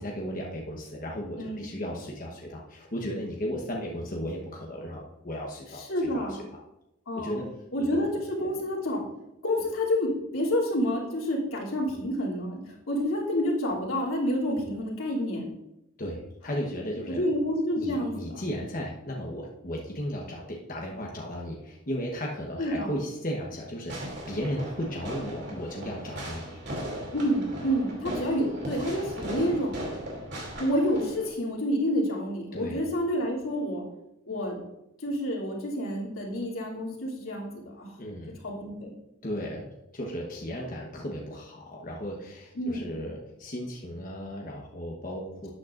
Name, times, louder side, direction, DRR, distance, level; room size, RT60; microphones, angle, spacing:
voice 1, 0.0-6.4 7.1-7.5 7.8-8.0 8.4-8.5 16.0-17.2 17.7-26.6 32.5-32.9 38.0-38.4 39.2-45.5, equal, 40° left, -1 dB, 1.1 m, -35 dB
voice 2, 5.8-6.4 7.1-7.4 7.7-9.0 9.4-12.6 12.9-15.5 17.1-18.4 22.6-22.9 27.1-29.7 30.6-33.8 34.3-34.6 35.0-37.9 38.4-38.9 42.5-42.8, equal, 90° left, -3 dB, 3.0 m, -28 dB
Fireworks, 23.9-31.3, right 1 dB, 55° right, 2.8 m, -37 dB
12.5 x 8.8 x 2.6 m, 0.89 s
head